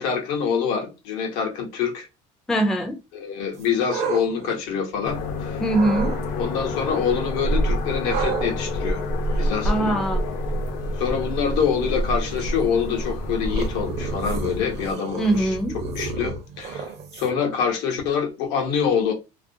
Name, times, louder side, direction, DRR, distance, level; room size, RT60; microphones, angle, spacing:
voice 1, 0.0-2.1 3.1-5.6 6.4-9.0 9.4-10.0 11.0-15.5 15.7-16.8 17.1-19.1, left 7 dB, 85° left, 0.8 m, -25 dB
voice 2, 2.5-3.0 5.6-6.2 9.6-10.2 15.2-15.8, right 1 dB, 5° left, 0.3 m, -22 dB
sound 1, 3.5-5.3 5.7-6.2 8.0-17.5, right 4 dB, 45° right, 0.5 m, -34 dB
sound 2, 5.0-14.9, left 1 dB, 60° left, 0.5 m, -27 dB
2.4 x 2.2 x 2.6 m
cardioid pair, 160°, 15 cm